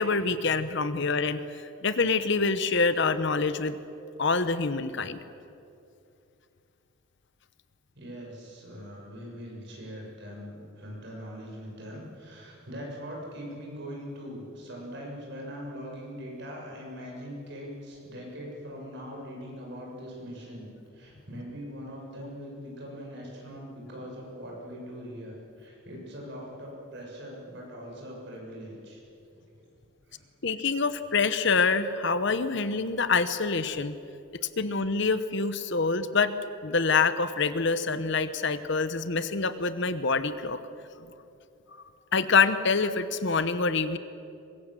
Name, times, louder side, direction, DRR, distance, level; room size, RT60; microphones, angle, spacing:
voice 1, 0.0-1.4 1.8-3.7 4.2-5.2 30.4-34.0 34.6-36.3 36.6-40.6 41.0-41.1 42.1-44.0, left 4 dB, 55° left, 12 dB, 1.0 m, -26 dB
voice 2, 8.0-29.0 30.1-30.2, equal, 55° right, -2 dB, 7.0 m, -41 dB
23.5 x 21.5 x 7.6 m, 2.6 s
head